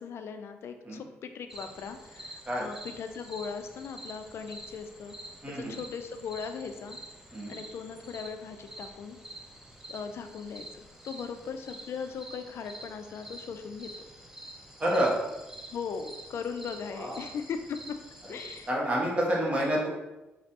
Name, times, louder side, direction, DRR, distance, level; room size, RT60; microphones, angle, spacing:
voice 1, 0.0-5.2 5.6-7.0 7.5-9.2 9.9-13.9 15.7-18.0 18.3-18.7, left 6 dB, 65° left, 7 dB, 0.3 m, -38 dB
sound 1, 1.5-18.7, right 1 dB, 5° right, 0.7 m, -47 dB
voice 2, 5.4-5.8 7.3-7.6 14.8-15.1 16.9-17.2 18.3-18.4 18.7-19.9, right 1 dB, 25° right, -4 dB, 1.3 m, -28 dB
3.9 x 3.2 x 2.9 m, 1.0 s
cardioid pair, 80°, 5 cm